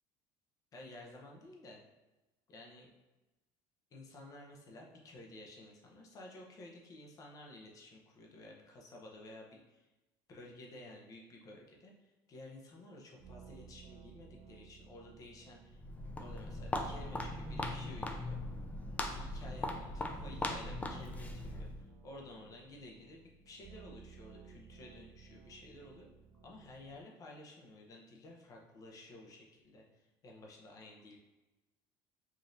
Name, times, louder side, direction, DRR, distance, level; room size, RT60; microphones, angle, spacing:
voice 1, 0.7-1.8 2.5-2.9 3.9-9.8 10.3-15.8 16.2-18.4 19.1-26.1 26.4-31.2, left 2 dB, 35° left, 0 dB, 0.8 m, -53 dB
sound 1, 13.2-27.0, right 5 dB, 65° right, 0.7 m, -57 dB
Walk footsteps, 15.7-21.9, left 2 dB, 15° left, 0.4 m, -40 dB
5.0 x 2.7 x 2.6 m, 1.1 s
cardioid pair, 130°, 10 cm